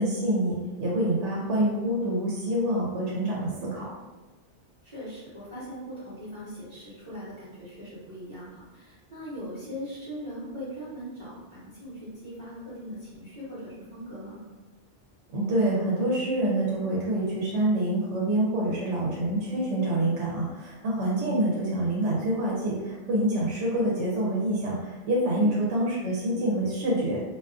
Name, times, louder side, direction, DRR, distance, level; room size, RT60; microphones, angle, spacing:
voice 1, 0.0-3.9 15.3-27.2, right 1 dB, 90° right, -4 dB, 0.9 m, -26 dB
voice 2, 4.8-14.4 21.1-21.5 25.4-25.6, equal, 30° right, -11 dB, 0.8 m, -40 dB
2.3 x 2.3 x 2.4 m, 1.2 s
omnidirectional pair, 1.2 m